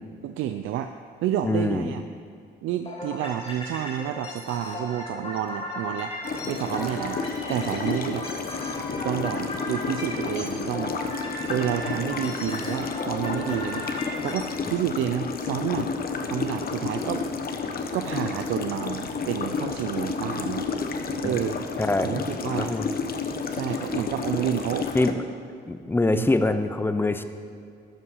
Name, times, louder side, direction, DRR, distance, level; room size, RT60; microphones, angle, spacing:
voice 1, 0.2-0.9 1.2-2.0 2.6-6.1 6.5-7.2 7.5-8.3 9.0-13.8 14.2-15.9 16.2-17.2 17.9-20.7 21.2-21.6 22.0-22.7 23.5-24.9 26.1-26.3, right 11 dB, 85° right, 8 dB, 0.4 m, -29 dB
voice 2, 1.4-1.9 21.8-22.9 24.9-25.1 25.7-27.2, left 2 dB, 10° left, 10 dB, 0.6 m, -24 dB
sound 1, 2.9-14.6, left 1 dB, 30° left, 2.7 m, -36 dB
sound 2, 6.2-25.1, left 5 dB, 50° left, 0.9 m, -31 dB
13.0 x 5.7 x 5.5 m, 2.4 s
cardioid pair, 90°, 20 cm